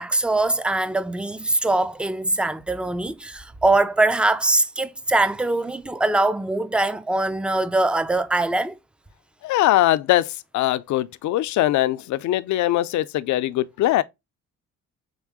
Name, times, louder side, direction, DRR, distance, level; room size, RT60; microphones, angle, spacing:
voice 1, 0.0-8.8, right 2 dB, 5° right, 0.4 m, -22 dB
voice 2, 9.4-14.0, left 15 dB, 70° left, 0.5 m, -21 dB
3.9 x 3.7 x 3.5 m
cardioid pair, 90°, 30 cm